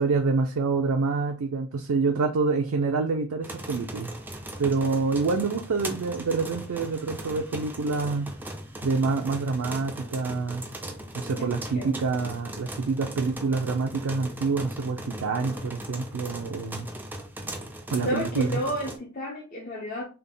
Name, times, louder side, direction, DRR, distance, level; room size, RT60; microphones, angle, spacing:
voice 1, 0.0-4.1 4.6-8.3 8.8-10.6 11.1-16.9 17.9-18.6, right 4 dB, 75° right, 0.4 m, -27 dB
sound 1, 3.4-19.0, right 1 dB, 10° right, 0.3 m, -39 dB
voice 2, 11.4-12.0 18.0-20.0, equal, 40° left, 0.5 m, -31 dB
3.4 x 2.1 x 3.8 m
head